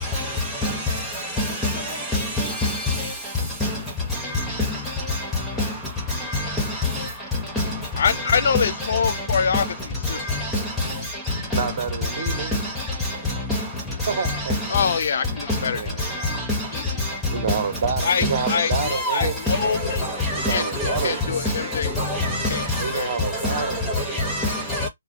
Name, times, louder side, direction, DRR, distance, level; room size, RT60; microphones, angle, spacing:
voice 1, 8.0-9.7 10.1-10.2 14.7-15.8 16.7-16.8 18.0-20.0 20.5-20.7 21.0-21.9 22.5-22.6 22.9-23.1, left 6 dB, 60° left, 0.3 m, -24 dB
voice 2, 11.5-12.6 14.1-14.8 15.7-16.4 17.3-19.4 20.3-21.2 21.5-21.9 22.8-24.3, right 6 dB, 50° right, 0.8 m, -29 dB
voice 3, 18.9-19.3 20.3-20.5 20.8-20.9 22.1-22.6 23.5-23.6 24.3-24.9, left 1 dB, 5° left, 0.5 m, -24 dB
2.5 x 2.1 x 2.5 m
hypercardioid pair, 150°, 0 cm